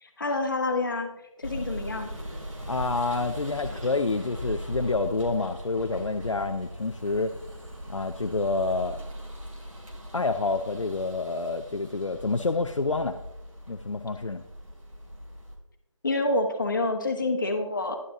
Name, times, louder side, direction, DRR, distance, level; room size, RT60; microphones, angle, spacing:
voice 1, 0.0-1.1 1.4-2.1 16.0-18.0, left 2 dB, 40° left, 5 dB, 1.2 m, -27 dB
sound 1, 1.4-15.6, equal, 80° right, 2.7 m, -39 dB
voice 2, 2.7-7.3 7.9-9.0 10.1-13.2 13.7-14.4, left 3 dB, 70° left, 6 dB, 0.6 m, -28 dB
11.0 x 10.0 x 2.9 m, 0.90 s
figure-of-eight pair, 160°, 17 cm